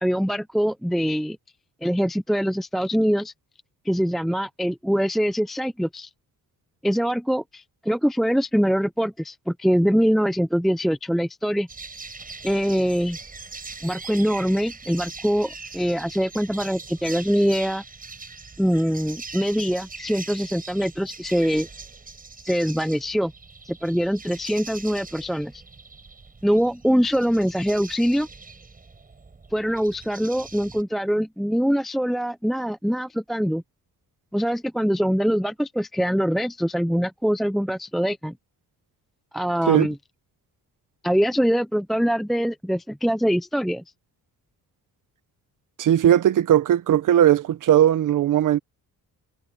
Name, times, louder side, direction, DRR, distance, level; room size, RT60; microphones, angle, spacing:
voice 1, 0.0-1.4 1.8-3.3 3.9-6.1 6.8-11.7 12.4-13.2 13.8-17.8 18.6-21.7 22.4-23.3 23.6-25.6 26.4-28.3 29.5-33.6 34.3-38.3 39.3-40.0 41.0-43.8, equal, ahead, 0.5 m, -23 dB
sound 1, 11.7-30.8, right 4 dB, 20° right, 7.7 m, -41 dB
voice 2, 45.8-48.6, right 11 dB, 55° right, 0.8 m, -18 dB
cardioid pair, 155°, 37 cm